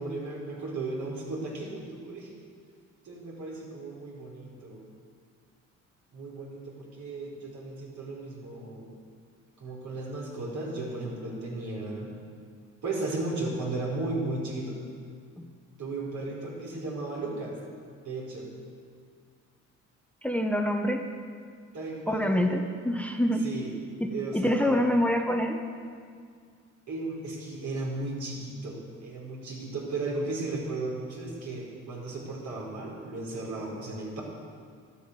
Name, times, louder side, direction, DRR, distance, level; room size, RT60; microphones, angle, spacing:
voice 1, 0.0-2.3 3.0-4.9 6.1-8.9 9.6-12.1 12.8-14.8 15.8-17.6 18.0-18.5 21.7-22.5 23.4-23.7 24.1-24.8 26.9-34.2, right 2 dB, 65° right, -3 dB, 5.0 m, -35 dB
voice 2, 20.2-21.0 22.1-23.4 24.0-25.6, equal, 5° left, 4 dB, 1.0 m, -26 dB
12.5 x 12.5 x 8.4 m, 2.1 s
cardioid pair, 90°, 30 cm